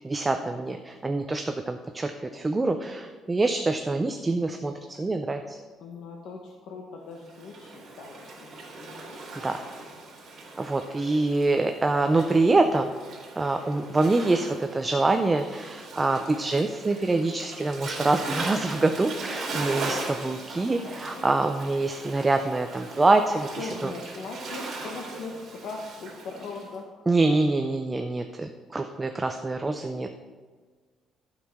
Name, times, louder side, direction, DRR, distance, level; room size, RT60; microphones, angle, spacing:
voice 1, 0.0-5.6 9.4-9.6 10.6-12.9 13.4-23.9 27.1-30.1, right 2 dB, 15° right, 6 dB, 0.4 m, -25 dB
voice 2, 5.8-9.2 9.6-9.9 20.8-21.2 23.6-26.9, left 3 dB, 65° left, 0 dB, 1.1 m, -40 dB
Waves surf, 7.2-26.7, right 3 dB, 45° right, 2.6 m, -39 dB
11.5 x 5.6 x 5.9 m, 1.5 s
cardioid pair, 160°, 0 cm